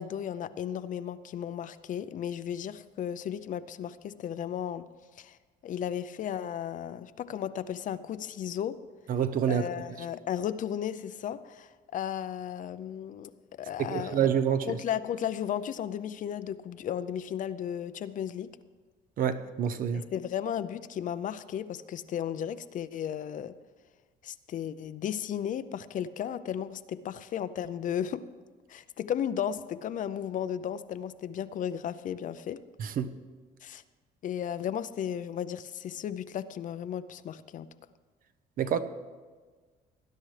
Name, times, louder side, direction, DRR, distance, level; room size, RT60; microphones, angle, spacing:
voice 1, 0.0-4.9 5.2-5.4 5.6-8.8 9.5-13.3 13.6-14.2 14.6-18.5 19.9-23.5 24.2-28.2 28.7-32.6 33.6-33.8 34.2-37.7, left 9 dB, 50° left, 0.5 m, -34 dB
voice 2, 9.1-9.7 13.8-14.8 19.2-20.0 32.8-33.1 38.6-38.8, right 8 dB, 55° right, 0.8 m, -27 dB
18.5 x 10.5 x 3.3 m
cardioid pair, 110°, 17 cm